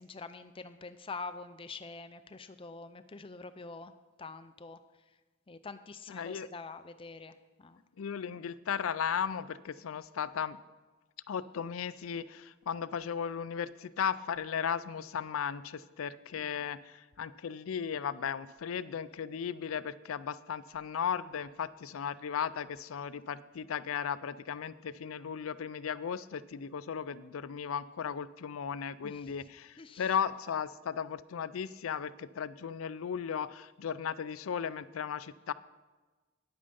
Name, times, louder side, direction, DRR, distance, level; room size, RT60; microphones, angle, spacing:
voice 1, 0.0-3.9 4.2-4.8 5.5-7.3 7.6-7.8 16.4-16.5 29.0-29.1 29.8-30.0, left 4 dB, 25° left, 10 dB, 0.5 m, -45 dB
voice 2, 6.1-6.5 8.0-10.6 11.3-35.5, left 7 dB, 90° left, 17 dB, 0.4 m, -36 dB
9.8 x 8.7 x 5.3 m, 1.2 s
head